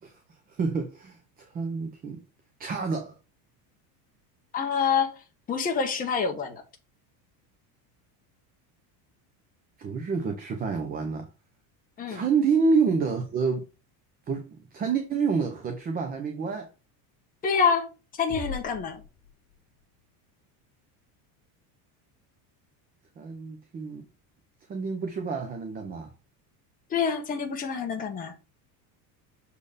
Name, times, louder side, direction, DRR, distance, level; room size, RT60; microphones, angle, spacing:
voice 1, 0.0-2.2 2.6-3.2 9.8-11.3 12.1-13.7 14.3-16.7 23.2-24.0 24.7-26.1, right 5 dB, 20° right, 0.8 m, -28 dB
voice 2, 4.5-5.1 5.5-6.6 12.0-12.2 17.4-17.9 18.2-19.0 26.9-28.3, left 6 dB, 20° left, 1.2 m, -26 dB
sound 1, 18.3-20.0, left 6 dB, 40° left, 1.8 m, -41 dB
6.9 x 4.4 x 5.0 m
cardioid pair, 170°, 45 cm